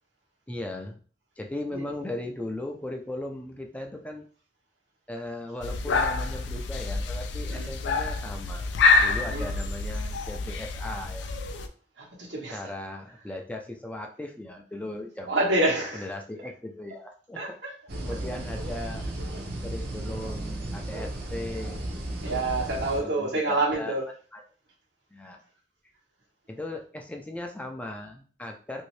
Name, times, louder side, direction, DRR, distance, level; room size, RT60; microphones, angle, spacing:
voice 1, 0.5-1.0 1.4-4.3 5.1-8.7 9.0-11.3 12.5-15.4 15.9-17.6 18.0-19.2 19.6-21.8 23.0-23.9 24.3-24.4 25.1-25.4 26.5-28.8, left 1 dB, 10° left, 2 dB, 0.3 m, -37 dB
sound 1, 5.6-11.7, left 4 dB, 75° left, 0.4 m, -27 dB
voice 2, 9.2-9.7 12.0-12.7 15.3-16.1 16.9-17.0 17.4-17.8 18.1-18.2 22.2-24.1, right 2 dB, 90° right, -3 dB, 1.2 m, -28 dB
sound 2, 17.9-23.0, right 1 dB, 60° right, 0.7 m, -34 dB
3.0 x 2.7 x 3.1 m, 0.41 s
head